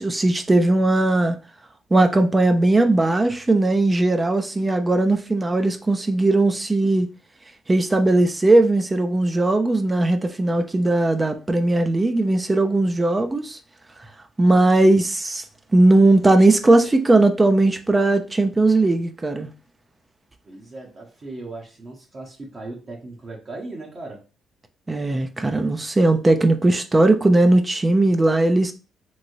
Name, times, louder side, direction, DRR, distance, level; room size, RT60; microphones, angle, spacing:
voice 1, 0.0-1.4 1.9-7.1 7.7-13.6 14.0-14.1 14.4-15.4 15.7-19.5 24.9-28.7, right 2 dB, 20° right, 0.4 m, -18 dB
voice 2, 20.4-24.2, right 2 dB, 40° right, 0.8 m, -37 dB
3.0 x 2.7 x 2.6 m
cardioid pair, 90°, 0 cm